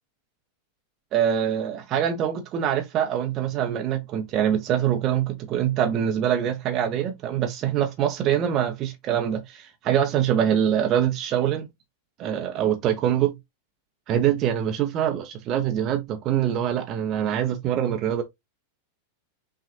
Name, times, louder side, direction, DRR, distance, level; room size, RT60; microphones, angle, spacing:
voice 1, 1.1-11.7 12.2-13.3 14.1-18.2, right 10 dB, 35° right, 0.7 m, -24 dB
5.7 x 2.5 x 2.6 m
figure-of-eight pair, 90°, 0 cm